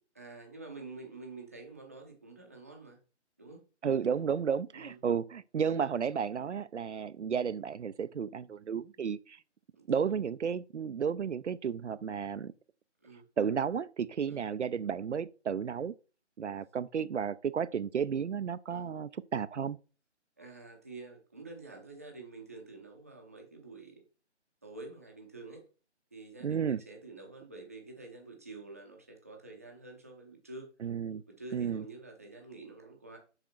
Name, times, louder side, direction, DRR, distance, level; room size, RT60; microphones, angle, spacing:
voice 1, 0.2-3.0 3.4-3.6 4.7-5.0 9.8-10.1 13.0-13.3 14.3-14.5 18.7-18.9 20.4-24.0 24.6-25.6 26.1-30.7 31.3-33.2, right 3 dB, 15° right, 0.6 m, -48 dB
voice 2, 3.8-9.4 9.9-12.5 13.4-15.9 16.4-19.8 26.4-26.8 30.8-31.2 31.5-31.8, right 7 dB, 75° right, 0.5 m, -32 dB
6.5 x 4.8 x 4.3 m
figure-of-eight pair, 150°, 36 cm